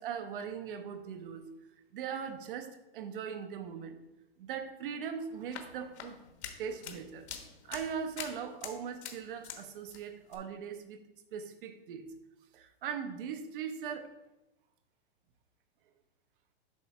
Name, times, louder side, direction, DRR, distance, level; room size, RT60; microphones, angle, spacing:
voice 1, 0.0-1.4 1.9-4.0 4.4-6.2 6.6-7.3 7.6-11.0 11.3-12.1 12.5-14.1, right 7 dB, 55° right, 7 dB, 0.9 m, -40 dB
sound 1, 5.3-9.6 9.9-10.4, left 8 dB, 90° left, 1.2 m, -45 dB
7.5 x 3.1 x 5.7 m, 0.96 s
supercardioid pair, 175°, 32 cm